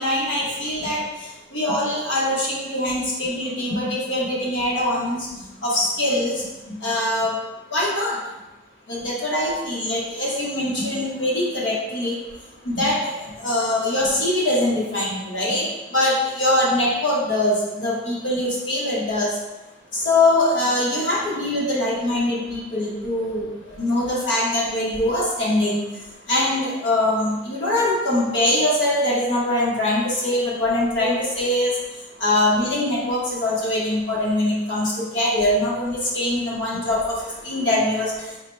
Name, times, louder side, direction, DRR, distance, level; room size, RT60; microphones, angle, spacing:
voice 1, 0.0-7.4 7.7-8.2 8.9-12.2 12.6-19.4 19.9-38.4, left 1 dB, 85° left, -5 dB, 1.2 m, -23 dB
3.9 x 2.2 x 4.2 m, 1.1 s
head